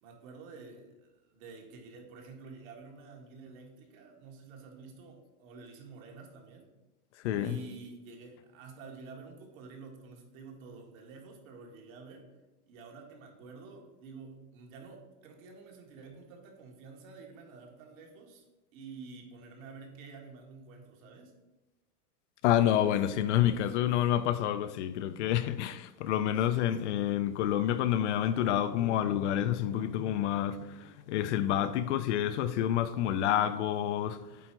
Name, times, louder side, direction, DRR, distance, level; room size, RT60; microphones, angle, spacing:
voice 1, 0.0-6.7 7.3-12.3 12.7-18.4 18.7-21.3 22.7-22.9 26.4-27.0, right 4 dB, 60° right, 1.8 m, -49 dB
voice 2, 7.2-7.6 22.4-34.5, left 11 dB, 50° left, 0.5 m, -28 dB
8.5 x 4.0 x 4.5 m
supercardioid pair, 150°, 46 cm